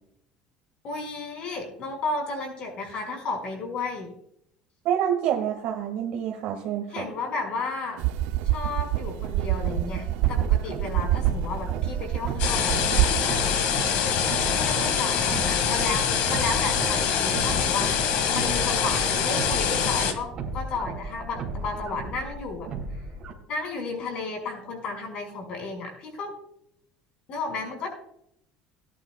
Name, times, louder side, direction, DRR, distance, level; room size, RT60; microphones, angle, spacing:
voice 1, 0.8-4.1 6.9-8.0 8.4-13.5 14.1-17.9 18.3-22.7 23.5-26.3 27.3-27.9, left 3 dB, 45° left, 2 dB, 5.6 m, -33 dB
voice 2, 4.8-7.0, right 9 dB, 60° right, 1 dB, 1.8 m, -27 dB
sound 1, 8.0-13.2, right 14 dB, 80° right, 0.6 m, -26 dB
sound 2, 9.6-23.3, right 3 dB, 40° right, 3.0 m, -35 dB
sound 3, 12.4-20.1, left 7 dB, 70° left, 1.9 m, -24 dB
18.5 x 11.0 x 2.3 m, 0.73 s
cardioid pair, 155°, 2 cm